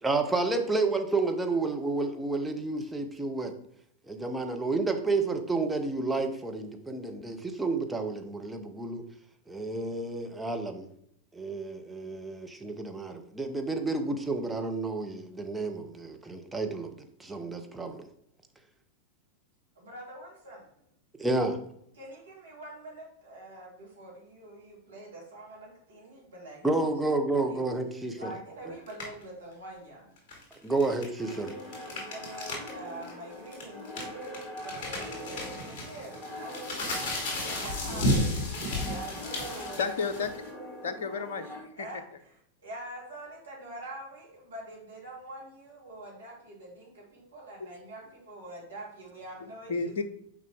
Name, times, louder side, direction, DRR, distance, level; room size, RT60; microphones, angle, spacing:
voice 1, 0.0-3.5 4.1-9.1 9.5-10.9 11.3-18.1 21.2-21.6 26.6-28.2 30.6-31.5, right 3 dB, 5° right, 4 dB, 0.8 m, -30 dB
voice 2, 19.7-20.7 21.9-27.1 27.5-27.6 28.1-30.1 31.8-38.2 38.5-39.8 41.8-50.0, right 1 dB, 70° right, -4 dB, 2.8 m, -45 dB
sound 1, 28.9-29.2 30.2-32.7 33.0-33.1 33.5-40.5, left 1 dB, 45° left, 2.8 m, -33 dB
sound 2, 31.2-41.6, left 1 dB, 20° left, 1.8 m, -43 dB
voice 3, 39.7-40.4 40.8-41.9 49.7-50.0, left 5 dB, 60° left, 10 dB, 0.7 m, -32 dB
6.6 x 5.0 x 3.5 m, 0.70 s
figure-of-eight pair, 90°, 0 cm